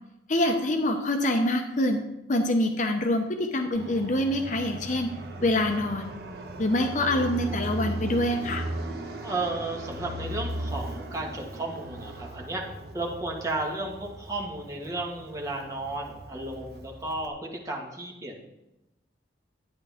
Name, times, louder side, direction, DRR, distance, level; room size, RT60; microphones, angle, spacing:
voice 1, 0.3-2.0 2.3-5.1 5.4-6.1 6.6-8.6, left 1 dB, 45° left, 5 dB, 0.8 m, -25 dB
Fixed-wing aircraft airplane, 3.7-17.3, right 1 dB, 60° right, 1.2 m, -37 dB
voice 2, 9.2-12.6 12.9-18.4, right 2 dB, 20° right, -1 dB, 1.7 m, -33 dB
11.5 x 9.3 x 3.6 m, 0.95 s
head